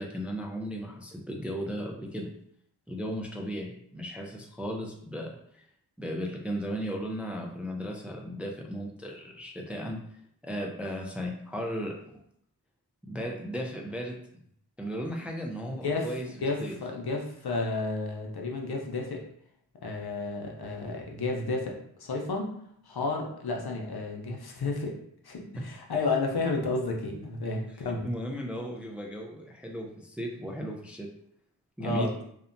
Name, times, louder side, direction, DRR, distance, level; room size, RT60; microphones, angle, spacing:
voice 1, 0.0-2.3 2.9-5.6 6.0-10.0 10.4-11.9 13.1-14.2 14.8-16.2 16.6-16.8 25.6-25.7 28.0-31.1 31.8-32.1, equal, 5° right, 1 dB, 0.4 m, -35 dB
voice 2, 15.7-16.1 16.4-19.2 19.8-22.5 22.8-24.9 25.2-28.1 31.8-32.2, left 3 dB, 65° left, 1 dB, 0.6 m, -32 dB
2.8 x 2.1 x 2.5 m, 0.68 s
cardioid pair, 45°, 40 cm